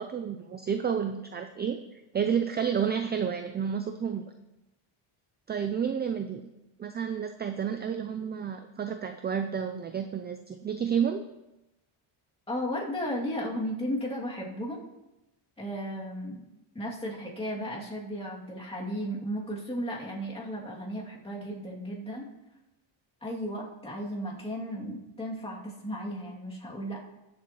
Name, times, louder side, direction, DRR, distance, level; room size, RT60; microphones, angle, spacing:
voice 1, 0.0-1.8 2.1-4.3 5.5-6.4 6.8-11.2, right 7 dB, 25° right, 7 dB, 0.3 m, -30 dB
voice 2, 12.5-14.9 15.6-16.4 16.7-22.3 23.2-27.0, equal, 10° left, -4 dB, 2.4 m, -35 dB
20.0 x 7.4 x 3.0 m, 0.96 s
cardioid pair, 145°, 50 cm